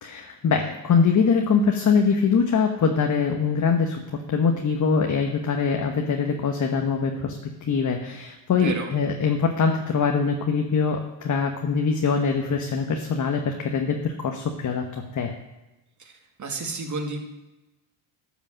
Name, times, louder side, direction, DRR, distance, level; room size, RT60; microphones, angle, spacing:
voice 1, 0.0-4.0 4.3-7.4 7.7-15.3, left 5 dB, 35° left, 3 dB, 1.2 m, -23 dB
voice 2, 8.5-8.9 16.0-16.1 16.4-17.2, right 3 dB, 35° right, 3 dB, 2.2 m, -31 dB
12.5 x 5.4 x 7.5 m, 1.0 s
cardioid pair, 100°, 50 cm